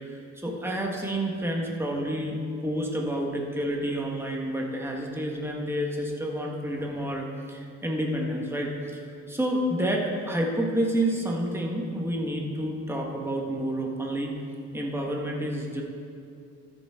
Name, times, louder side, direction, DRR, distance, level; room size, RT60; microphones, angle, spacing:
voice 1, 0.4-2.4 2.6-9.0 9.3-14.3 14.7-15.8, right 1 dB, 10° right, -1 dB, 1.5 m, -29 dB
14.0 x 7.3 x 3.7 m, 2.5 s
cardioid pair, 90°, 30 cm